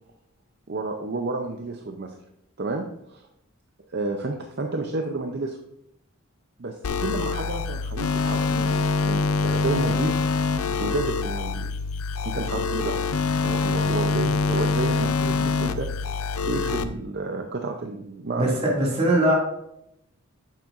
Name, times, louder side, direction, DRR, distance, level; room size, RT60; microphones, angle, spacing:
voice 1, 0.7-2.2 2.6-3.3 3.9-5.6 6.6-10.2 10.7-11.7 12.1-13.1 13.4-15.9 16.4-18.6, right 3 dB, 50° right, 4 dB, 0.6 m, -31 dB
sound 1, 6.8-16.8, left 4 dB, 90° left, 0.5 m, -25 dB
voice 2, 18.4-19.3, right 1 dB, 30° right, -3 dB, 2.2 m, -21 dB
9.3 x 7.4 x 2.5 m, 0.81 s
head